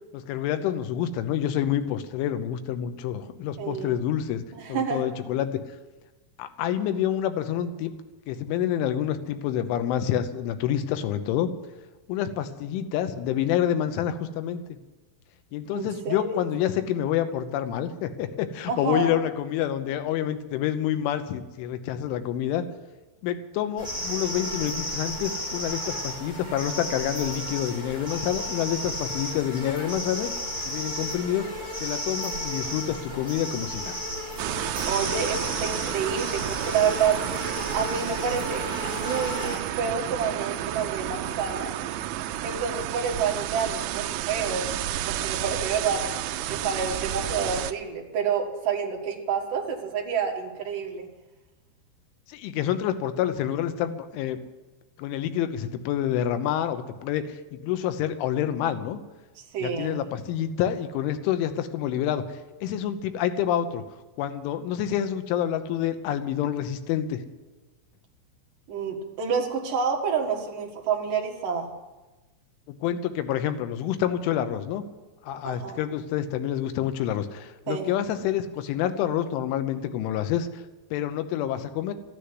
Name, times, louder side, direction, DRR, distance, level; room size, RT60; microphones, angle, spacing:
voice 1, 0.1-4.4 4.7-5.5 6.4-7.9 8.3-11.5 12.1-14.6 15.5-22.6 23.2-30.3 30.7-31.5 31.8-34.0 52.3-54.4 55.0-59.0 59.6-62.2 62.6-63.8 64.2-67.2 72.7-74.8 75.2-80.6 80.9-81.9, left 10 dB, 85° left, 9 dB, 3.4 m, -28 dB
voice 2, 3.6-3.9 4.6-5.1 15.7-16.4 18.7-19.2 34.8-37.2 37.7-38.6 38.9-41.7 42.4-44.7 45.0-46.1 46.5-51.1 59.4-60.0 68.7-71.7 75.4-75.8 77.7-78.0, right 6 dB, 55° right, 1 dB, 2.9 m, -28 dB
sound 1, 23.8-39.6, left 1 dB, 10° left, 6.2 m, -33 dB
sound 2, 34.4-47.7, right 12 dB, 80° right, 3.0 m, -31 dB
13.5 x 10.0 x 9.7 m, 1.1 s
omnidirectional pair, 5.4 m